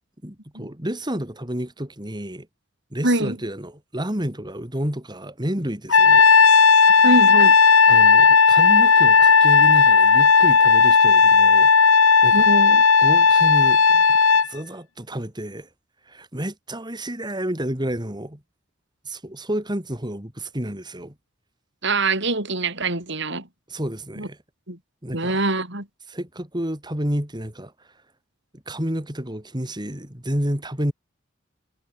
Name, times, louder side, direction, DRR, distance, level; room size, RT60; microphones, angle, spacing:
voice 1, 0.2-2.5 2.9-6.2 7.9-12.5 13.0-14.0 14.5-15.7 16.1-18.4 19.1-21.1 23.7-24.4 25.0-25.4 26.1-27.7 28.5-30.9, right 1 dB, 20° right, 3.7 m, -30 dB
voice 2, 3.0-3.4 7.0-7.5 12.3-12.8 21.8-23.4 24.2-24.3 24.7-24.8 25.1-25.9, right 2 dB, 60° right, 7.1 m, -23 dB
Trumpet, 5.9-14.5, left 5 dB, 85° left, 2.6 m, -14 dB
head